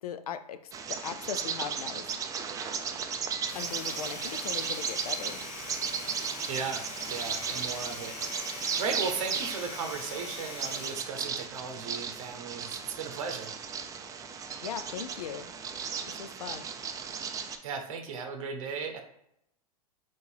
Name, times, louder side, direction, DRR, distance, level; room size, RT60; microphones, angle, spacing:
voice 1, 0.0-2.2 3.5-5.4 14.6-15.5 16.2-16.7, left 8 dB, 75° left, 10 dB, 0.4 m, -39 dB
Bird vocalization bird call bird song, 0.7-17.6, right 6 dB, 20° right, 0.4 m, -36 dB
Domestic sounds home sounds, 3.3-11.2, left 3 dB, 35° left, 0.9 m, -42 dB
voice 2, 6.5-6.8 7.1-13.5 17.6-19.0, right 5 dB, 60° right, 5 dB, 0.7 m, -36 dB
3.8 x 2.4 x 4.5 m, 0.78 s
hypercardioid pair, 100°, 19 cm